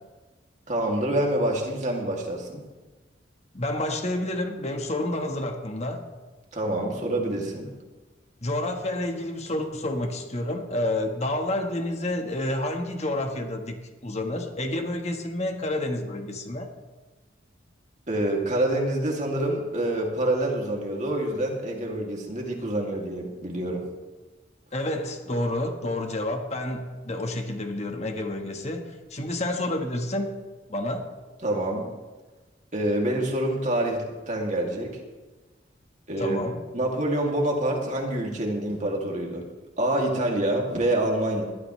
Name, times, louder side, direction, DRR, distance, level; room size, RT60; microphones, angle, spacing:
voice 1, 0.7-2.6 6.5-7.7 18.1-23.9 31.4-31.9 32.7-35.0 36.1-36.4 36.7-39.5 39.8-41.4, right 1 dB, 40° right, 0 dB, 2.6 m, -26 dB
voice 2, 3.5-6.0 8.4-16.7 24.7-30.3 30.7-31.1 36.2-36.6, left 1 dB, 35° left, 4 dB, 1.4 m, -29 dB
20.5 x 13.0 x 3.2 m, 1.2 s
head